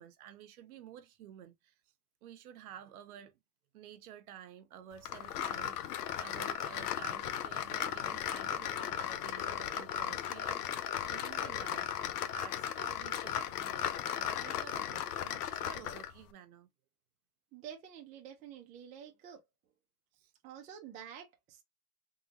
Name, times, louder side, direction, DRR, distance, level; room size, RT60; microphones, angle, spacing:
voice 1, 0.0-1.7 2.2-3.4 3.7-11.9 12.2-16.7 20.1-20.3, right 9 dB, 65° right, 0.9 m, -52 dB
sound 1, 5.0-16.2, left 10 dB, 75° left, 0.8 m, -36 dB
voice 2, 17.5-19.4 20.4-21.6, right 9 dB, 15° right, 0.5 m, -49 dB
3.8 x 2.3 x 2.8 m
supercardioid pair, 150°, 47 cm